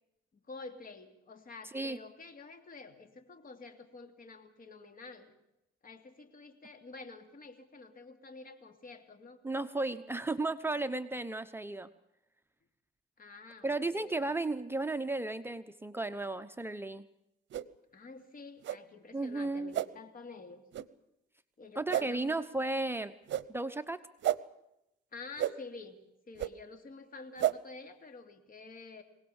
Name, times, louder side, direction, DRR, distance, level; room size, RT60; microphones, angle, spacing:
voice 1, 0.3-5.3 5.8-9.4 13.2-14.3 17.9-20.6 21.6-22.4 25.1-26.0 26.3-29.0, left 3 dB, 45° left, 7 dB, 2.8 m, -49 dB
voice 2, 9.4-11.9 13.6-17.0 19.1-19.7 21.8-23.1 23.5-24.0, right 2 dB, 10° right, 9 dB, 0.9 m, -34 dB
sound 1, 17.5-17.7 18.6-18.8 19.7-19.9 20.7-20.9 21.9-22.1 23.3-23.5 24.2-24.4 25.4-25.5 26.4-26.5 27.4-27.5, right 12 dB, 65° right, 0.8 m, -30 dB
23.5 x 18.0 x 7.2 m, 0.86 s
cardioid pair, 90°, 20 cm